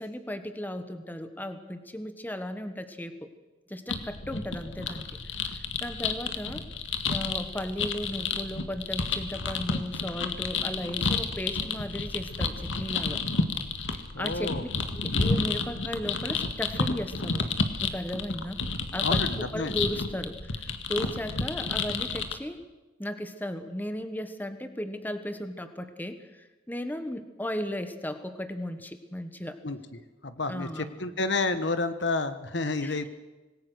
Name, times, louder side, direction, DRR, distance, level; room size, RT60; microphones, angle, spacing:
voice 1, 0.0-3.3 3.7-5.1 5.4-6.7 7.1-13.2 13.9-14.5 14.9-17.4 17.8-18.6 18.9-22.6 23.0-29.6 30.5-30.9 32.8-33.1, left 1 dB, 10° left, 9 dB, 1.4 m, -36 dB
sound 1, 3.9-22.3, left 4 dB, 90° left, 1.9 m, -31 dB
voice 2, 14.1-14.6 19.0-19.7 29.6-29.8 30.2-33.1, left 3 dB, 65° left, 11 dB, 1.4 m, -30 dB
26.5 x 20.0 x 6.5 m, 1.1 s
head